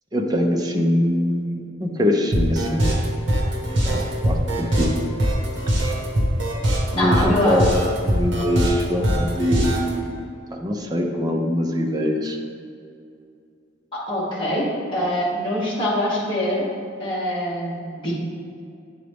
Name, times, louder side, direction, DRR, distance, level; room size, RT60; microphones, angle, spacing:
voice 1, 0.1-3.0 3.8-4.9 6.9-10.2 10.5-12.4, equal, 20° right, 1 dB, 0.6 m, -23 dB
sound 1, 2.3-9.9, equal, 70° right, 1.3 m, -22 dB
voice 2, 7.0-7.6 13.9-14.7 14.9-16.6 17.0-18.1, left 1 dB, 25° left, -8 dB, 1.3 m, -24 dB
9.2 x 3.9 x 3.4 m, 2.4 s
head